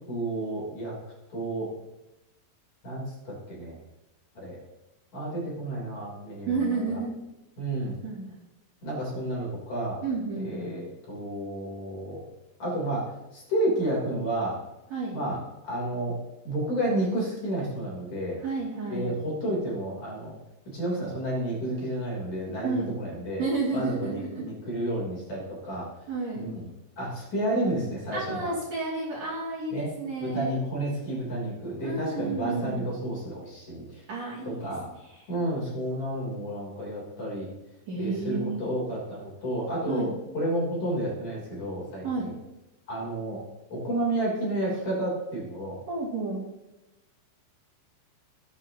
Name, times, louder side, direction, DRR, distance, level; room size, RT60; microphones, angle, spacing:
voice 1, 0.1-0.9 1.3-1.7 2.8-3.8 4.4-4.6 5.1-6.6 6.9-7.0 7.6-8.0 8.8-10.0 10.4-10.8 11.1-12.2 12.6-14.6 15.1-15.4 15.6-16.2 16.4-18.4 18.9-20.3 20.7-23.5 23.7-25.9 26.3-26.7 27.0-28.5 29.7-29.9 30.2-34.0 34.4-34.9 35.3-37.5 38.0-42.3 42.9-43.4 43.7-45.8, right 1 dB, 40° left, -4 dB, 4.4 m, -31 dB
voice 2, 6.5-7.1 8.0-8.3 10.0-10.7 14.9-15.2 18.4-19.2 22.6-22.9 23.4-24.6 26.1-26.5 28.1-30.5 31.8-32.9 34.1-35.2 37.9-38.6 39.9-40.1 42.0-42.3 45.9-46.4, right 3 dB, 45° right, -7 dB, 3.3 m, -31 dB
20.0 x 8.5 x 2.9 m, 0.98 s
omnidirectional pair, 5.2 m